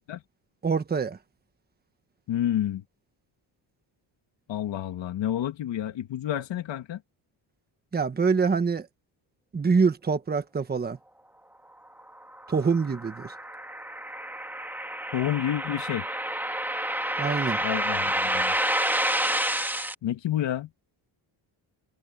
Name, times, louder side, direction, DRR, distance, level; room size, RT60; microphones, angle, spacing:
voice 1, 0.6-1.2 7.9-8.9 9.5-11.0 12.5-13.3 17.2-17.6, right 5 dB, 20° right, 1.3 m, -25 dB
voice 2, 2.3-2.8 4.5-7.0 15.1-16.1 17.6-18.6 20.0-20.7, left 11 dB, 70° left, 2.6 m, -29 dB
sound 1, 12.1-19.9, right 1 dB, 5° right, 2.3 m, -29 dB
cardioid pair, 160°, 46 cm